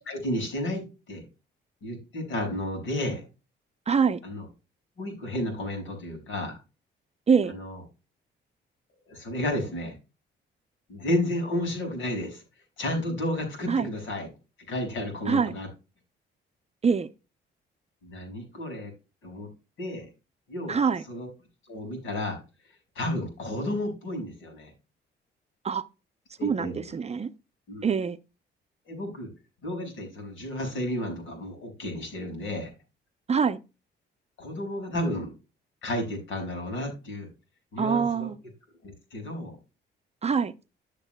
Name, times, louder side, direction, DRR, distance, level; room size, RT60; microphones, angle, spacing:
voice 1, 0.0-1.2 1.8-3.2 4.2-4.4 5.0-6.6 7.5-7.8 9.1-9.9 10.9-12.4 12.8-14.3 14.7-15.7 18.0-18.9 19.2-19.5 19.8-20.1 20.5-20.8 21.1-21.3 21.7-22.4 23.0-24.7 26.4-26.9 27.7-27.8 28.9-29.3 29.6-32.7 34.4-35.3 35.8-37.3 37.7-38.3 38.8-39.6, left 1 dB, 75° left, 5.6 m, -32 dB
voice 2, 3.9-4.2 7.3-7.5 13.7-13.9 15.3-15.5 16.8-17.1 20.7-21.0 25.6-25.9 26.4-27.3 27.8-28.2 33.3-33.6 37.8-38.4 40.2-40.5, right 6 dB, 30° right, 0.6 m, -24 dB
14.5 x 6.7 x 2.2 m
cardioid pair, 90°, 20 cm